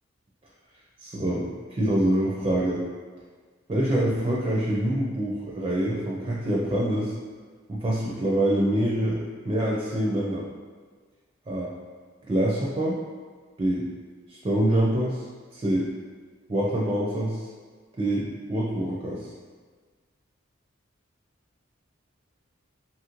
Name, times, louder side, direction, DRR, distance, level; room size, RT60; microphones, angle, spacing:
voice 1, 1.0-2.8 3.7-7.1 7.7-9.2 9.5-10.5 11.5-11.7 12.3-13.0 13.6-13.8 14.3-15.2 15.5-15.9 16.5-17.4 18.0-19.2, right 1 dB, 25° right, -5 dB, 0.4 m, -25 dB
2.9 x 2.5 x 2.9 m, 1.5 s
head